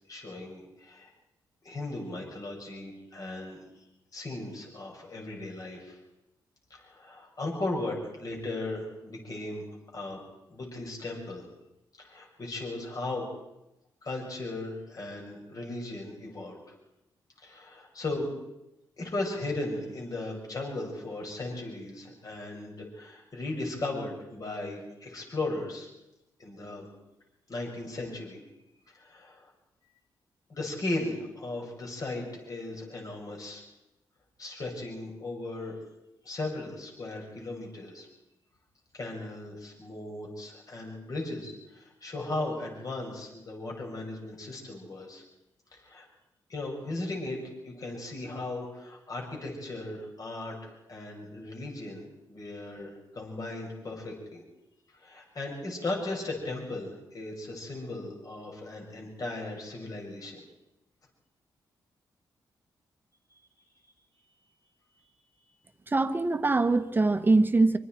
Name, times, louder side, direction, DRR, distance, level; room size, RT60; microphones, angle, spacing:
voice 1, 0.1-1.1 1.6-3.6 4.1-6.0 6.7-9.7 9.9-10.2 10.5-11.5 12.0-13.3 14.0-16.6 17.4-18.3 19.0-25.9 26.4-26.9 27.5-28.4 28.9-29.5 30.5-33.6 34.4-35.8 36.2-38.1 38.9-45.2 45.7-46.1 46.5-52.0 52.3-54.4 54.9-60.4, left 2 dB, 45° left, -1 dB, 6.2 m, -37 dB
voice 2, 65.9-67.8, right 3 dB, 25° right, 9 dB, 1.4 m, -23 dB
25.0 x 24.0 x 4.6 m, 0.92 s
cardioid pair, 75°, 8 cm